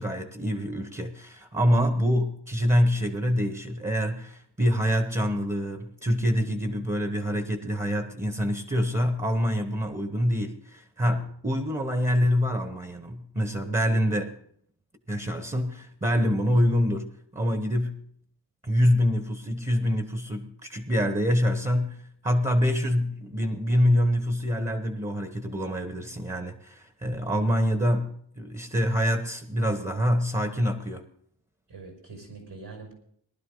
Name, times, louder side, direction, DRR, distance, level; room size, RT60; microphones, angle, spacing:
voice 1, 0.0-14.3 15.1-18.0 18.6-31.0, equal, 20° right, 7 dB, 1.1 m, -26 dB
voice 2, 31.7-32.9, right 3 dB, 80° right, 2 dB, 6.0 m, -43 dB
19.0 x 12.0 x 3.9 m, 0.64 s
wide cardioid pair, 135°, 42 cm